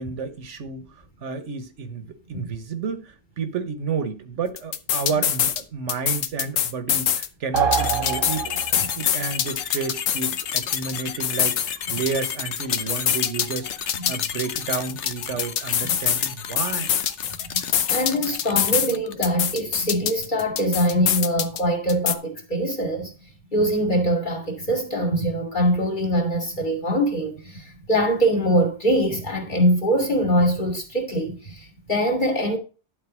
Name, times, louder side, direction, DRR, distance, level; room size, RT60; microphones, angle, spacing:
voice 1, 0.0-8.6 9.0-16.9, right 5 dB, 70° right, 1.5 m, -31 dB
sound 1, 4.6-5.6 5.9-7.3 7.6-10.9 11.2-13.6 13.9-16.3 16.6-18.9 19.2-21.6 21.9-22.1, left 9 dB, 90° left, 1.2 m, -24 dB
sound 2, 7.5-9.0, right 6 dB, 50° right, 0.9 m, -25 dB
sound 3, 7.7-19.3, left 8 dB, 65° left, 1.0 m, -33 dB
voice 2, 17.9-23.1 23.5-32.6, equal, 40° left, 2.6 m, -23 dB
11.5 x 4.0 x 6.2 m
omnidirectional pair, 1.3 m